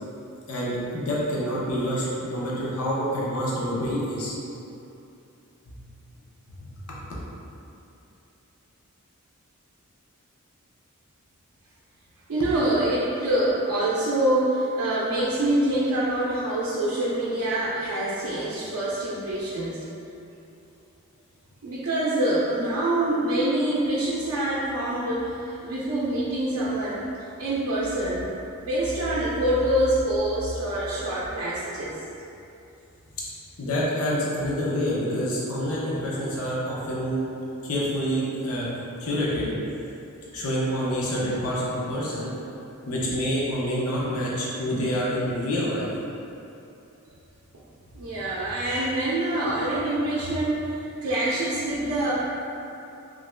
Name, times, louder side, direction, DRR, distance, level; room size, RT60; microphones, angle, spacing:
voice 1, 0.5-4.3 5.7-5.8 6.9-7.0 33.6-37.2 37.6-38.7 39.0-39.5 40.3-42.3 42.9-45.9, equal, 70° left, -6 dB, 0.6 m, -27 dB
voice 2, 12.3-19.8 21.6-27.1 27.4-28.3 28.6-31.9 47.5-47.6 47.9-52.1, right 1 dB, 80° right, -8 dB, 0.5 m, -25 dB
2.9 x 2.4 x 3.2 m, 2.8 s
head